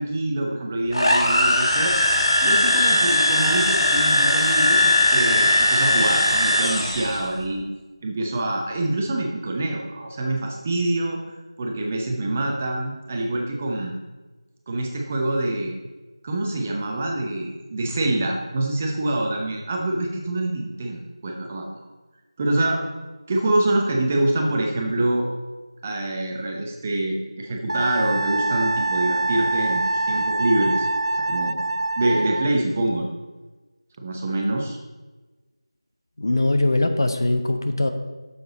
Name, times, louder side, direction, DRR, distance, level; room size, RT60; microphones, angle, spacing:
voice 1, 0.0-2.0 2.4-7.6 8.0-11.2 11.6-13.9 14.7-15.8 16.2-21.7 22.4-22.8 23.3-25.3 25.8-30.9 31.3-31.6 32.0-33.1 34.0-34.8, right 1 dB, 20° right, 0 dB, 0.7 m, -25 dB
sound 1, 0.9-7.2, left 1 dB, 70° left, 1.6 m, -19 dB
Wind instrument woodwind instrument, 27.7-32.6, right 2 dB, 80° right, 0.4 m, -24 dB
voice 2, 36.2-37.9, left 2 dB, 45° left, 7 dB, 0.7 m, -21 dB
9.0 x 7.0 x 4.0 m, 1.2 s
figure-of-eight pair, 170°, 3 cm